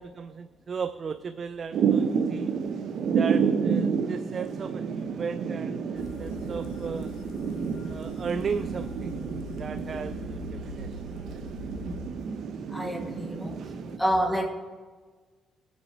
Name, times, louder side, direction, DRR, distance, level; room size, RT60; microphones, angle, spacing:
voice 1, 0.0-2.5 3.1-7.1 7.8-9.2 9.6-11.0 11.3-11.7, right 6 dB, 45° right, 11 dB, 0.4 m, -36 dB
Thunder / Rain, 1.7-14.0, right 6 dB, 65° right, 0.8 m, -30 dB
sound 1, 6.0-12.1, left 3 dB, 90° left, 1.5 m, -42 dB
voice 2, 12.7-13.6 14.0-14.5, equal, 5° left, 5 dB, 1.5 m, -27 dB
17.5 x 7.0 x 4.6 m, 1.4 s
cardioid pair, 90°, 0 cm